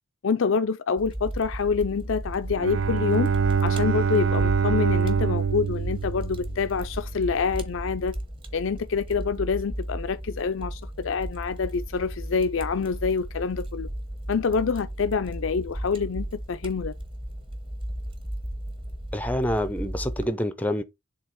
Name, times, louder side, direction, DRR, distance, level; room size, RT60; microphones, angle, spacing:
voice 1, 0.2-3.3 3.6-8.1 8.5-13.9 14.3-16.9, left 5 dB, 65° left, 0.5 m, -26 dB
Fire, 1.0-20.3, equal, 25° right, 1.1 m, -35 dB
Bowed string instrument, 2.5-7.0, right 6 dB, 60° right, 0.5 m, -25 dB
voice 2, 19.1-20.8, equal, 5° left, 0.5 m, -27 dB
7.2 x 2.9 x 4.7 m
head